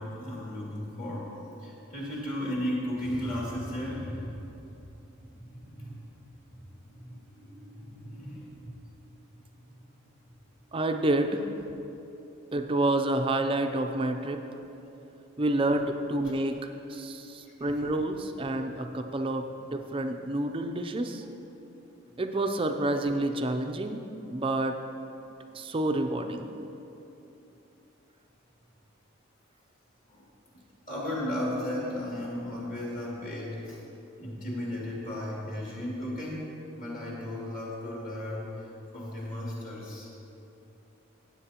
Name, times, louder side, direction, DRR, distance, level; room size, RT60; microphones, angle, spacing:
voice 1, 0.0-1.3 1.6-4.8 5.4-6.0 6.5-8.6 10.0-10.1 30.1-30.2 30.9-33.8 34.2-38.7 38.9-40.1, left 1 dB, 40° left, -5 dB, 2.5 m, -35 dB
voice 2, 10.7-11.5 12.5-14.4 15.4-21.2 22.2-24.0 24.3-24.8 25.5-26.5 38.0-38.3, right 1 dB, 25° right, 6 dB, 0.5 m, -29 dB
16.5 x 8.1 x 2.9 m, 3.0 s
head